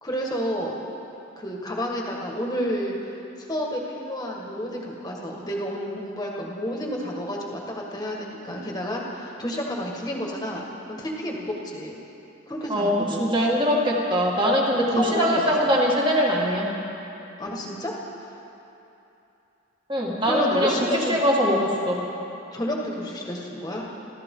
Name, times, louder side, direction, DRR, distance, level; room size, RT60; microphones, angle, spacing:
voice 1, 0.0-0.8 1.4-12.0 12.5-13.3 14.9-15.4 15.7-15.8 17.4-18.0 20.2-21.2 22.5-23.9, equal, 20° left, -2 dB, 1.8 m, -30 dB
voice 2, 13.2-16.7 19.9-20.7 21.1-22.0, equal, 25° right, -3 dB, 2.2 m, -22 dB
27.0 x 13.0 x 3.9 m, 2.9 s
head